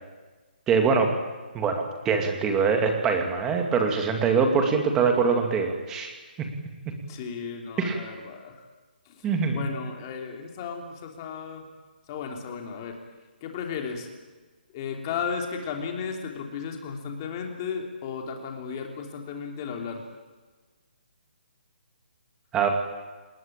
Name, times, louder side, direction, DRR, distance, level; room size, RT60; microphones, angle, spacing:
voice 1, 0.7-1.1 1.5-6.1 6.4-6.5 7.8-8.0 9.2-9.7 22.5-22.7, right 5 dB, 10° right, 4 dB, 2.2 m, -23 dB
voice 2, 7.1-8.6 9.0-11.7 12.1-13.0 13.4-14.1 14.7-20.0, left 6 dB, 20° left, 3 dB, 3.3 m, -34 dB
28.0 x 20.5 x 8.8 m, 1.3 s
hypercardioid pair, 175°, 6 cm